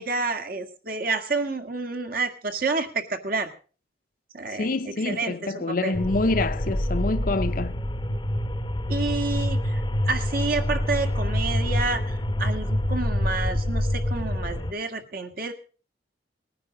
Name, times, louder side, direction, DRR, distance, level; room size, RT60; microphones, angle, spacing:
voice 1, 0.0-3.5 4.3-4.7 5.0-6.0 8.9-9.8 10.1-15.5, right 3 dB, 55° right, 1.8 m, -29 dB
voice 2, 4.5-7.8, left 3 dB, 50° left, 0.7 m, -26 dB
sound 1, 5.9-14.7, left 1 dB, 25° left, 0.8 m, -26 dB
19.5 x 10.0 x 5.1 m
head